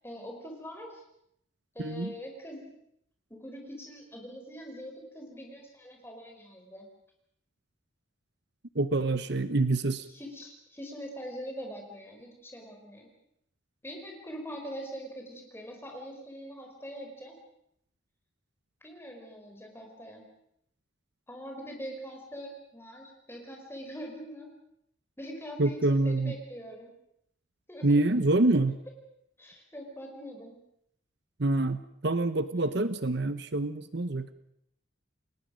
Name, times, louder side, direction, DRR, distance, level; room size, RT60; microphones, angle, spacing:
voice 1, 0.0-1.0 1.7-2.7 3.3-6.9 10.1-13.1 13.8-17.4 18.8-20.3 21.3-24.5 25.2-26.9 27.7-28.0 29.4-30.6, equal, 10° left, 2 dB, 4.9 m, -43 dB
voice 2, 1.8-2.1 8.7-10.1 25.6-26.3 27.8-28.8 31.4-34.3, right 2 dB, 55° right, 12 dB, 0.9 m, -26 dB
29.5 x 19.5 x 6.4 m, 0.75 s
head